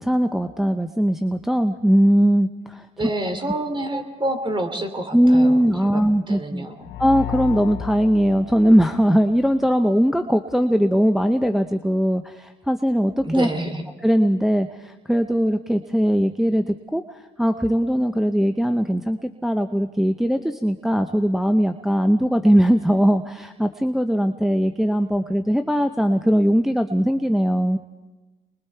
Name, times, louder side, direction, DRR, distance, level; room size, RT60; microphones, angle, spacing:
voice 1, 0.0-2.9 3.9-4.0 5.1-6.7 7.0-13.5 14.0-27.8, equal, ahead, 6 dB, 0.8 m, -20 dB
voice 2, 3.0-5.6 5.9-7.0 13.2-13.8, right 1 dB, 25° right, 6 dB, 3.0 m, -28 dB
sound 1, 6.8-9.6, left 13 dB, 85° left, 2.0 m, -34 dB
28.5 x 21.5 x 4.6 m, 1.2 s
cardioid pair, 90°, 20 cm